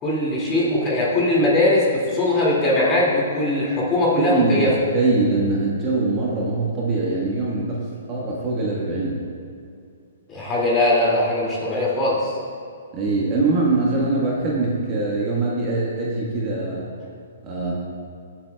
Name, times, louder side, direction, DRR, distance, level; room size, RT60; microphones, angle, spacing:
voice 1, 0.0-4.7 10.3-12.4, left 1 dB, 20° left, -5 dB, 2.2 m, -20 dB
voice 2, 4.2-9.2 12.9-16.9 17.4-17.7, right 3 dB, 25° right, -5 dB, 1.4 m, -23 dB
18.0 x 7.8 x 2.3 m, 2.4 s
hypercardioid pair, 160°, 0 cm